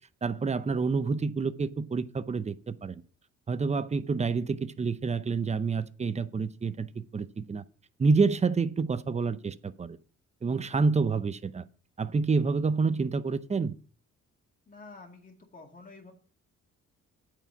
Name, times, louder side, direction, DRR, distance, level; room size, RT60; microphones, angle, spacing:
voice 1, 0.2-3.0 3.5-7.6 8.0-10.0 10.4-11.6 12.0-13.7, right 4 dB, 20° right, 0.7 m, -28 dB
voice 2, 14.7-16.1, left 3 dB, 25° left, 2.2 m, -49 dB
8.7 x 4.9 x 7.1 m
cardioid pair, 90°, 30 cm